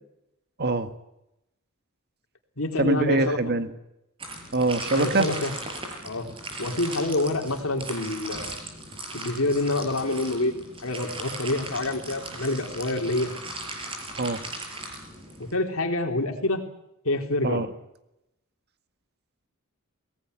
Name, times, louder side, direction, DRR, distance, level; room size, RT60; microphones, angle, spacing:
voice 1, 0.6-0.9 2.8-3.7 4.5-5.3 14.2-14.4 17.4-17.7, right 2 dB, 50° right, 9 dB, 1.7 m, -24 dB
voice 2, 2.6-3.4 4.9-5.5 6.0-6.3 6.6-8.5 9.1-10.5 10.8-13.3 15.5-16.6 17.0-17.7, left 2 dB, 65° left, 3 dB, 3.8 m, -27 dB
sound 1, 4.2-15.5, right 2 dB, 25° right, 5.8 m, -38 dB
23.0 x 18.5 x 9.9 m, 0.87 s
head